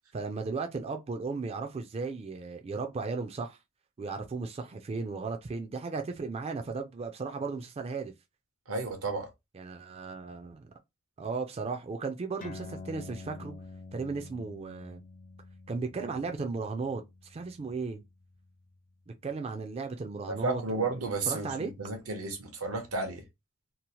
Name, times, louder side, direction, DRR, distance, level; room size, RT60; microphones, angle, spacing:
voice 1, 0.1-3.6 4.0-8.1 9.5-10.7 11.2-13.5 13.9-15.0 15.7-18.0 19.2-21.0 21.3-21.7, right 4 dB, 30° right, 0.3 m, -35 dB
voice 2, 8.7-9.3 20.3-23.2, right 3 dB, 85° right, 0.8 m, -33 dB
sound 1, 12.4-19.3, left 3 dB, 40° left, 0.5 m, -48 dB
2.8 x 2.0 x 2.9 m
head